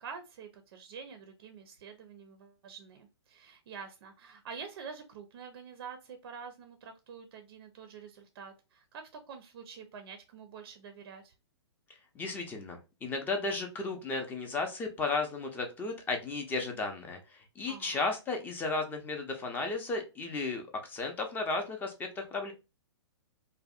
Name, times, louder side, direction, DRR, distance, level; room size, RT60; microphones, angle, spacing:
voice 1, 0.0-11.3 17.7-18.1, right 6 dB, 60° right, 7 dB, 0.4 m, -47 dB
voice 2, 12.1-22.5, left 3 dB, 15° left, 4 dB, 0.4 m, -34 dB
2.6 x 2.1 x 2.3 m, 0.28 s
hypercardioid pair, 135°, 15 cm